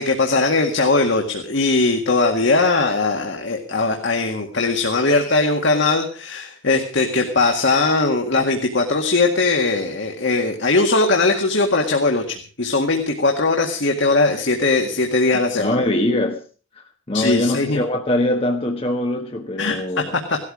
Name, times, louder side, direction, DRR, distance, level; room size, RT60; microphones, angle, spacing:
voice 1, 0.0-15.7 17.1-17.8 19.6-20.0 20.3-20.4, left 3 dB, 65° left, 1.9 m, -19 dB
voice 2, 15.6-16.4 16.7-20.1, left 1 dB, 30° left, 1.4 m, -22 dB
17.5 x 13.0 x 4.9 m
head